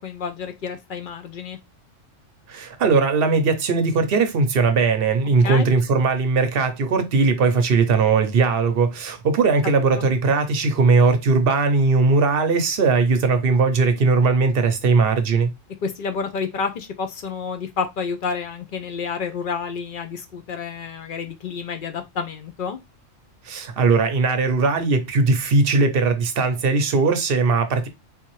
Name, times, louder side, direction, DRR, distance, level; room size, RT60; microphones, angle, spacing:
voice 1, 0.0-1.6 5.4-5.7 10.0-10.1 15.8-22.8, left 5 dB, 55° left, 0.6 m, -29 dB
voice 2, 2.5-15.5 23.4-27.9, right 4 dB, 55° right, 0.7 m, -19 dB
3.7 x 2.8 x 3.0 m
omnidirectional pair, 1.3 m